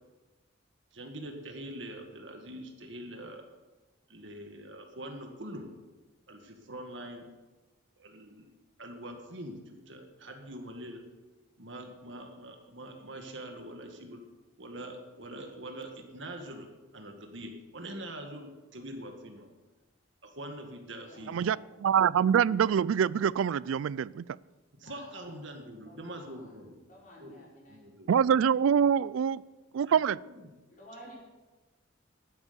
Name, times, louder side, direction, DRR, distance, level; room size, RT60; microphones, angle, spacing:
voice 1, 0.9-3.4 4.1-5.7 6.3-7.3 8.0-8.5 8.8-11.0 11.6-14.2 14.6-16.7 16.9-19.5 20.2-21.5 22.0-22.1 24.8-26.8 27.2-28.1 29.8-30.5, right 1 dB, 65° right, 4 dB, 2.0 m, -44 dB
voice 2, 21.0-21.5 24.8-25.4 25.8-27.8 30.7-31.1, equal, 40° left, -5 dB, 4.8 m, -52 dB
voice 3, 21.8-24.2 28.1-29.4 29.7-30.2, right 8 dB, 85° right, 22 dB, 0.3 m, -25 dB
12.0 x 9.8 x 6.9 m, 1.2 s
head